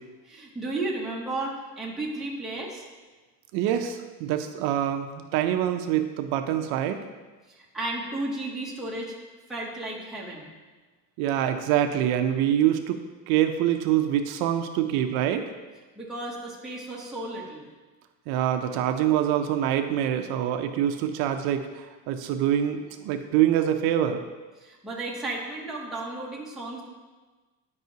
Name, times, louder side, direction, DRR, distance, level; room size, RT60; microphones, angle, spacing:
voice 1, 0.3-2.8 7.5-9.1 9.5-10.5 16.0-17.7 24.6-26.8, right 2 dB, ahead, -5 dB, 0.7 m, -33 dB
voice 2, 3.5-7.0 11.2-13.0 13.3-15.4 18.3-24.2, right 11 dB, 65° right, 7 dB, 0.5 m, -25 dB
9.1 x 5.4 x 2.7 m, 1.3 s
cardioid pair, 180°, 40 cm